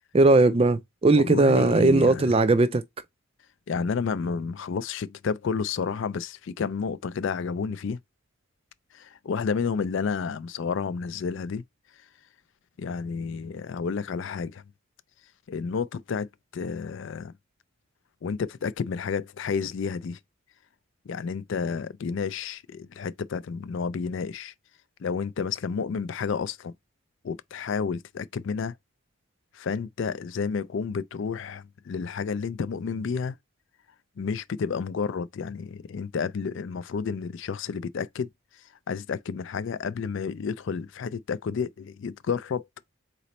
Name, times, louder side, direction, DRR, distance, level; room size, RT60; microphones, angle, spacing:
voice 1, 0.1-2.8, right 2 dB, 25° right, 0.3 m, -19 dB
voice 2, 1.1-2.2 3.7-8.0 8.9-11.6 12.8-14.6 15.5-16.3 16.5-17.3 18.2-20.2 21.1-24.5 25.0-26.7 27.2-28.7 29.5-33.4 34.2-38.3 38.9-42.7, left 5 dB, 55° left, 0.3 m, -30 dB
4.0 x 3.1 x 4.1 m
head